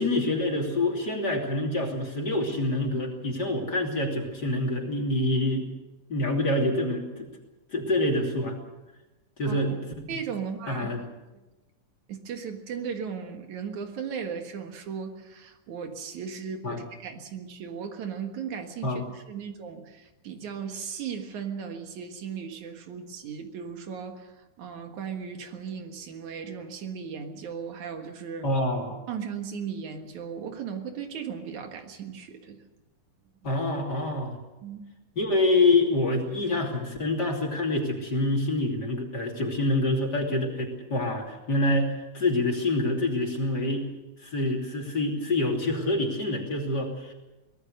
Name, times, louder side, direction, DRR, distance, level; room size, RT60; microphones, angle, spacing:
voice 1, 0.0-5.7 6.1-7.3 7.7-8.5 9.4-9.8 10.7-11.0 16.6-16.8 18.8-19.0 28.4-29.0 33.4-34.4 35.2-43.9 44.2-47.1, left 2 dB, 35° left, 1 dB, 3.2 m, -26 dB
voice 2, 9.5-9.8 10.1-10.9 11.3-11.4 12.1-28.5 29.1-32.6 34.6-34.8, right 7 dB, 70° right, 5 dB, 3.0 m, -37 dB
24.0 x 19.0 x 6.5 m, 1.1 s
omnidirectional pair, 3.5 m